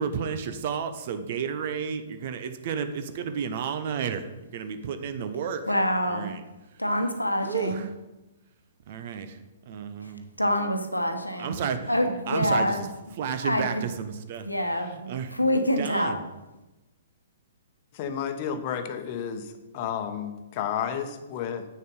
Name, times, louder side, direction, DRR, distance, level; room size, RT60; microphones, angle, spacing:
voice 1, 0.0-4.3 4.5-5.6 6.1-6.4 7.4-7.9 8.9-9.4 9.7-10.3 11.4-11.9 12.3-12.9 13.2-15.3 15.8-16.2, right 7 dB, 45° right, 9 dB, 0.9 m, -32 dB
voice 2, 5.7-6.3 6.8-7.8 10.4-11.6 11.9-12.8 13.4-13.8 14.4-16.2, left 1 dB, 85° left, 6 dB, 1.2 m, -26 dB
voice 3, 17.9-21.7, left 8 dB, 35° left, 8 dB, 1.0 m, -32 dB
8.7 x 6.6 x 5.4 m, 1.0 s
figure-of-eight pair, 115°, 0 cm